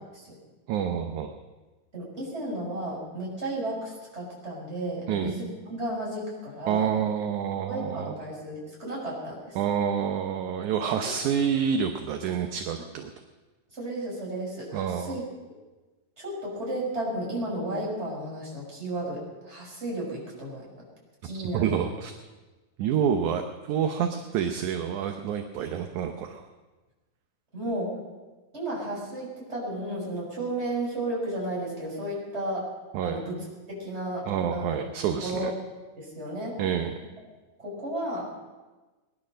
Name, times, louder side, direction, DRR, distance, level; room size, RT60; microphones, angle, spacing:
voice 1, 0.7-1.3 5.1-5.4 6.7-8.1 9.6-13.1 14.7-15.2 21.2-22.1 22.8-26.4 32.9-33.2 34.3-35.5 36.6-36.9, right 8 dB, 75° right, 6 dB, 2.1 m, -28 dB
voice 2, 1.9-6.9 7.7-9.6 11.0-11.1 13.7-15.2 16.2-20.7 21.2-21.9 23.1-23.3 27.5-27.9 28.5-32.7 33.0-33.4 33.7-34.2 34.5-34.8 35.2-35.5 36.0-36.6 37.6-38.3, right 1 dB, 20° right, -4 dB, 5.7 m, -33 dB
20.0 x 11.0 x 6.4 m, 1.2 s
omnidirectional pair, 3.8 m